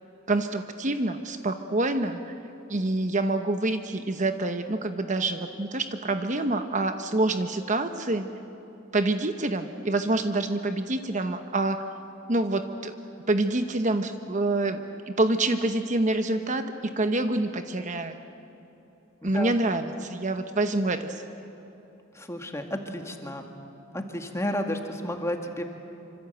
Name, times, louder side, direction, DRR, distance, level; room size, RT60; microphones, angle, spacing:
voice 1, 0.3-2.4 2.7-8.3 8.9-11.8 12.3-12.9 13.3-14.8 15.1-18.2 19.2-21.2, right 2 dB, 35° right, 7 dB, 1.0 m, -26 dB
voice 2, 19.2-19.5 22.1-23.5 23.9-25.6, left 1 dB, 15° left, 4 dB, 2.0 m, -32 dB
27.0 x 25.5 x 8.0 m, 2.9 s
head